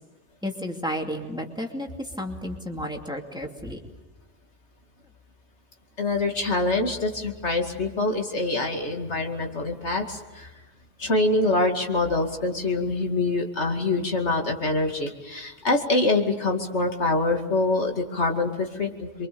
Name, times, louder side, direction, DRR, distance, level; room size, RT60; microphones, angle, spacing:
voice 1, 0.4-1.9 2.2-3.8, equal, 5° right, 2 dB, 2.5 m, -32 dB
voice 2, 6.0-10.5 11.0-19.3, left 2 dB, 75° left, 3 dB, 2.7 m, -25 dB
27.5 x 24.0 x 6.9 m, 1.2 s
omnidirectional pair, 1.2 m